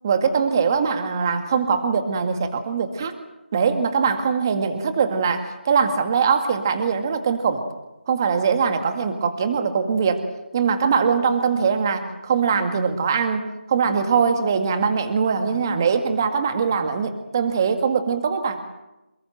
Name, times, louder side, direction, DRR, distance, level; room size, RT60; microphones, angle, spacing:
voice 1, 0.0-3.1 3.5-7.6 8.1-10.2 10.5-18.6, right 6 dB, 20° right, 7 dB, 2.0 m, -22 dB
28.0 x 21.0 x 7.9 m, 0.97 s
figure-of-eight pair, 170°, 6 cm